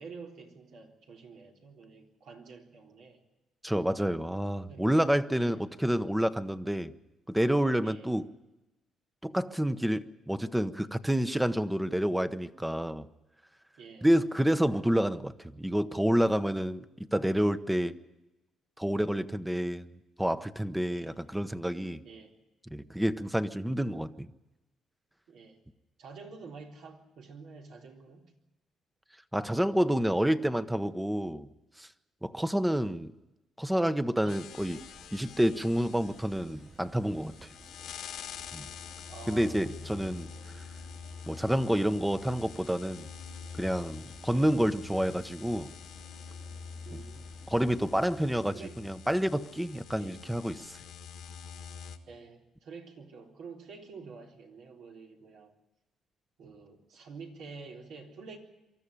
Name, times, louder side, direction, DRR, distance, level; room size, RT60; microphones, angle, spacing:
voice 1, 0.0-3.2 4.7-4.9 5.3-5.6 7.8-8.1 13.8-14.1 20.9-21.1 22.0-22.3 25.3-25.6 26.0-28.3 34.2-34.4 39.1-40.7 46.8-47.2 48.5-48.8 50.0-50.2 52.1-55.5 56.4-58.4, right 4 dB, 80° right, 0 dB, 3.8 m, -48 dB
voice 2, 3.6-6.9 7.3-8.3 9.2-13.1 14.0-16.9 17.1-18.0 18.8-19.9 20.2-22.0 22.7-24.3 29.3-31.5 31.8-31.9 32.2-33.1 33.6-34.8 35.1-37.4 38.5-38.7 39.3-40.3 41.3-43.1 43.5-45.7 47.5-50.8, equal, 5° right, 11 dB, 0.9 m, -28 dB
sound 1, 34.3-52.0, left 6 dB, 85° left, 1.6 m, -46 dB
sound 2, 34.5-48.2, right 3 dB, 45° right, 3.1 m, -56 dB
24.0 x 13.0 x 9.9 m, 1.0 s
cardioid pair, 90°, 0 cm